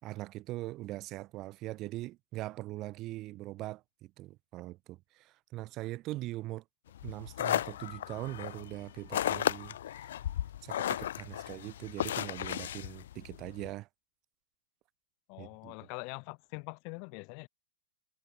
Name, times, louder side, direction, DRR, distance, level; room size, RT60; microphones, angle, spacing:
voice 1, 0.0-6.6 7.0-10.1 10.6-13.9 15.4-15.8, right 17 dB, 35° right, 2.1 m, -41 dB
sound 1, 6.9-13.7, left 11 dB, 70° left, 1.1 m, -35 dB
voice 2, 15.3-17.5, left 37 dB, 40° left, 4.1 m, -43 dB
hypercardioid pair, 135°, 0 cm